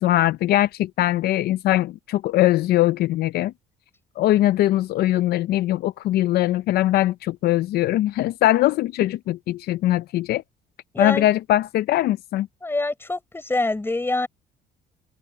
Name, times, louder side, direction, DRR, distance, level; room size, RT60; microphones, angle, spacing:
voice 1, 0.0-3.5 4.2-10.4 11.0-12.5, left 14 dB, 70° left, 0.5 m, -21 dB
voice 2, 10.9-11.3 12.6-14.3, left 2 dB, 15° left, 4.2 m, -25 dB
cardioid pair, 110°, 17 cm